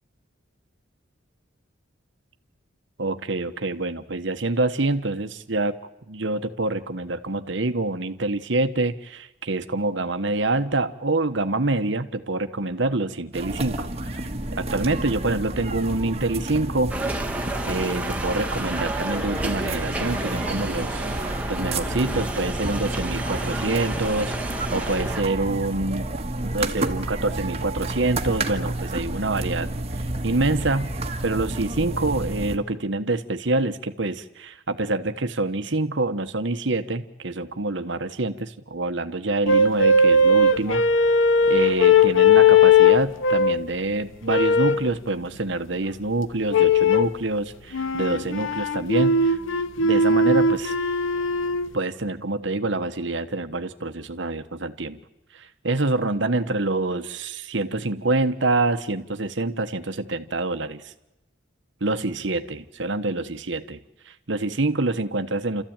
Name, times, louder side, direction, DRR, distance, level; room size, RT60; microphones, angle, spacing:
voice 1, 3.0-5.8 6.1-13.9 14.5-16.9 17.6-21.0 21.5-24.3 24.7-26.1 26.4-30.9 31.2-40.8 41.5-49.4 49.8-50.7 51.7-55.0 55.3-60.9 61.8-63.8 64.1-65.6, right 2 dB, 65° right, 8 dB, 1.2 m, -26 dB
sound 1, 13.3-32.6, right 1 dB, 30° right, 1.5 m, -30 dB
sound 2, 16.9-25.2, right 2 dB, 5° right, 1.3 m, -31 dB
sound 3, 39.5-43.7 44.3-44.9 46.5-47.2 47.7-51.7, left 3 dB, 75° left, 0.9 m, -18 dB
29.0 x 14.5 x 8.9 m, 0.96 s
head